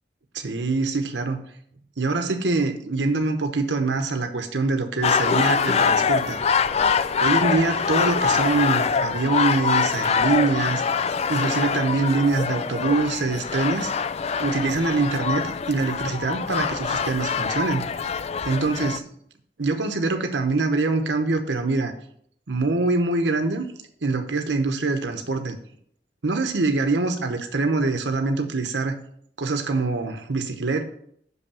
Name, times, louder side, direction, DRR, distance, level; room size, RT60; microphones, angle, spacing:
voice 1, 0.3-1.4 2.0-6.4 7.2-10.8 11.3-13.9 14.4-17.8 18.5-19.1 19.6-21.9 22.5-23.6 24.0-25.6 26.2-29.0 29.4-30.8, right 3 dB, 80° right, 6 dB, 0.9 m, -24 dB
sound 1, 5.0-19.0, left 6 dB, 35° left, 0.4 m, -24 dB
6.3 x 5.5 x 7.0 m, 0.67 s
head